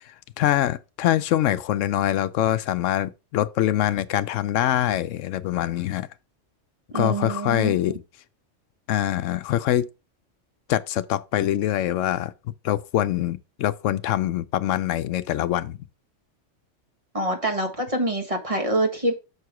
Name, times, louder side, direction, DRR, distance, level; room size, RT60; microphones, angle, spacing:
voice 1, 0.4-6.1 6.9-8.0 8.9-9.9 10.7-12.3 12.6-15.8, left 12 dB, 85° left, 0.9 m, -24 dB
voice 2, 6.9-8.0 17.1-19.2, right 1 dB, 30° right, 1.4 m, -26 dB
6.6 x 4.7 x 4.9 m
omnidirectional pair, 1.2 m